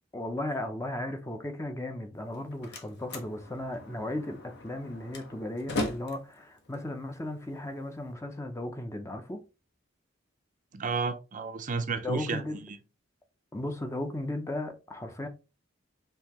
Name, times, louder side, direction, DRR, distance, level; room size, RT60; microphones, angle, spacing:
voice 1, 0.1-9.4 12.0-12.6 13.5-15.3, left 1 dB, 15° left, 0.6 m, -36 dB
Slam, 2.2-8.1, left 1 dB, 60° left, 1.0 m, -39 dB
voice 2, 10.7-12.8, right 4 dB, 40° right, 0.5 m, -32 dB
5.5 x 2.8 x 2.9 m
head